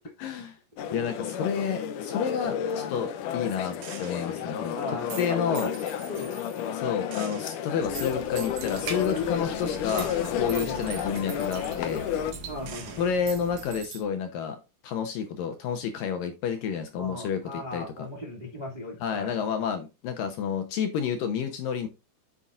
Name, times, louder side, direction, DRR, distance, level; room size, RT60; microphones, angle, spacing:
voice 1, 0.2-0.5 0.9-4.7 5.2-5.7 6.7-12.1 13.0-17.4 17.7-17.9 19.0-21.9, left 7 dB, 75° left, 2.2 m, -30 dB
sound 1, 0.8-12.3, left 9 dB, 90° left, 1.8 m, -32 dB
Gunshot gunfire, 3.8-4.4 5.1-6.8 7.1-9.3 9.9-12.4 12.7-14.0, right 8 dB, 85° right, 3.9 m, -44 dB
voice 2, 4.3-5.7 6.1-6.4 10.5-10.9 12.5-13.0 17.0-19.4, left 2 dB, 20° right, 1.3 m, -38 dB
sound 2, 7.8-13.8, right 4 dB, 65° right, 3.4 m, -41 dB
9.6 x 7.2 x 2.5 m
omnidirectional pair, 4.7 m